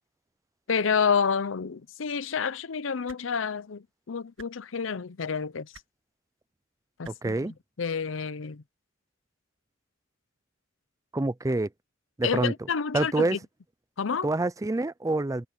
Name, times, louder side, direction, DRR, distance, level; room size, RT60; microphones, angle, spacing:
voice 1, 0.7-5.7 7.0-8.6 12.2-13.4 14.0-14.3, left 6 dB, 85° left, 0.6 m, -29 dB
sound 1, 3.1-3.2 4.4-4.5 5.7-5.9 7.0-7.2 8.4-8.5, right 5 dB, 85° right, 2.0 m, -49 dB
voice 2, 7.1-7.5 11.1-11.7 12.2-12.5 12.9-13.4 14.2-15.5, right 2 dB, 15° right, 0.5 m, -26 dB
head